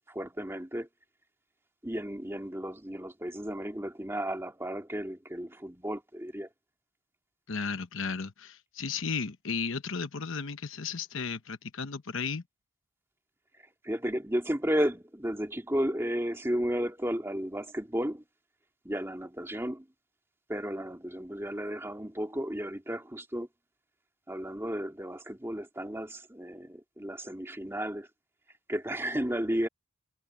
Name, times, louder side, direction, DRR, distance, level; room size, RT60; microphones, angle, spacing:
voice 1, 0.1-0.9 1.8-6.5 13.8-18.2 18.8-19.9 20.5-23.5 24.3-28.1 28.7-29.7, equal, 10° right, 2.1 m, -33 dB
voice 2, 7.5-12.4, left 5 dB, 60° left, 0.9 m, -34 dB
head